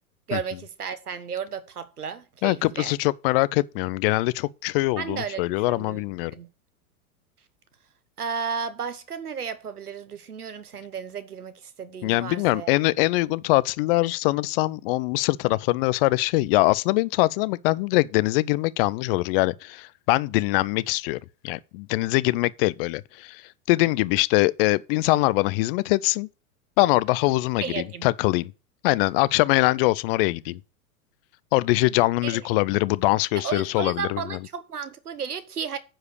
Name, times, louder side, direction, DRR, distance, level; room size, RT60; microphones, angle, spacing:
voice 1, 0.3-2.9 5.0-6.0 6.3-6.5 8.2-12.7 27.6-28.1 32.2-32.5 33.4-35.8, right 6 dB, 90° right, 1.2 m, -33 dB
voice 2, 2.4-6.3 12.0-23.4 23.7-26.3 26.8-28.5 28.8-30.6 31.5-34.4, left 20 dB, 40° left, 0.5 m, -23 dB
9.9 x 4.9 x 6.6 m
hypercardioid pair, 95°, 44 cm